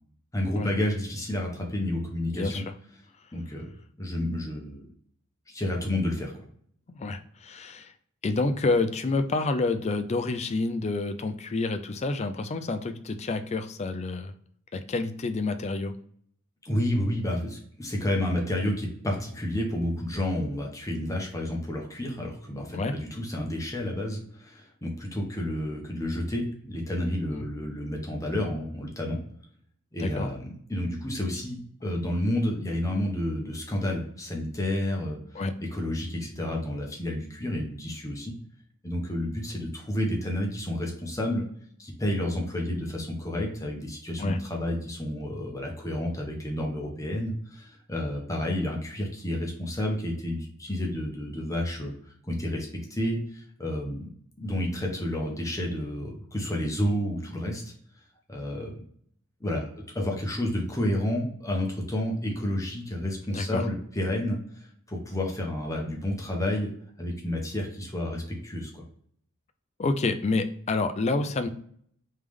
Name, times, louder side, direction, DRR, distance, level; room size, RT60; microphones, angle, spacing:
voice 1, 0.3-2.6 3.3-3.7 4.0-4.9 5.5-6.4 16.6-29.2 29.9-35.2 35.7-38.3 38.8-41.4 41.8-51.9 52.2-54.1 54.4-57.6 58.3-58.8 59.4-59.7 59.9-64.4 64.9-66.7 67.0-68.8, left 1 dB, 15° left, 0 dB, 0.9 m, -30 dB
voice 2, 2.3-2.6 6.9-7.9 8.2-14.3 14.7-16.0 22.7-22.9 27.3-27.5 30.0-30.3 35.3-35.6 44.2-44.4 63.3-63.7 69.8-71.5, left 3 dB, 30° left, 8 dB, 0.4 m, -28 dB
3.5 x 3.2 x 3.4 m, 0.62 s
head